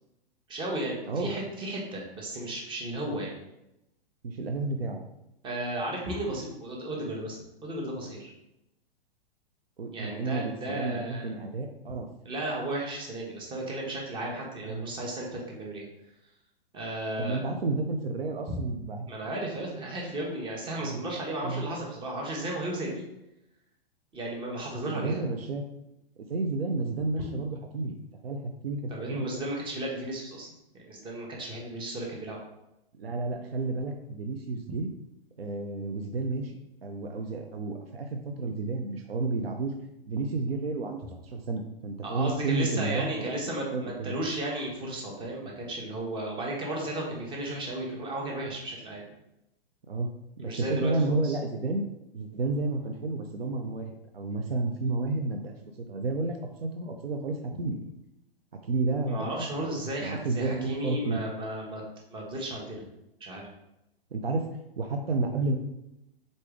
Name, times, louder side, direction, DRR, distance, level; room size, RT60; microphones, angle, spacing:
voice 1, 0.5-3.3 5.4-8.3 9.9-11.4 12.2-15.8 16.7-17.4 19.1-23.0 24.1-25.2 28.9-30.5 30.7-32.4 42.0-49.1 50.4-51.4 59.1-61.8 62.1-62.9 63.2-63.4, right 1 dB, 15° right, -1 dB, 0.9 m, -34 dB
voice 2, 4.2-5.0 9.8-12.1 14.6-14.9 17.2-19.0 20.8-21.0 21.4-21.7 24.9-25.6 26.3-28.0 28.2-29.4 33.0-34.9 35.4-39.7 40.0-44.1 49.9-50.1 50.4-51.9 52.1-57.9 58.7-59.3 60.0-61.2 64.1-64.5 64.8-65.6, right 3 dB, 80° right, 4 dB, 0.5 m, -31 dB
3.9 x 3.3 x 3.4 m, 0.87 s
figure-of-eight pair, 110°, 30 cm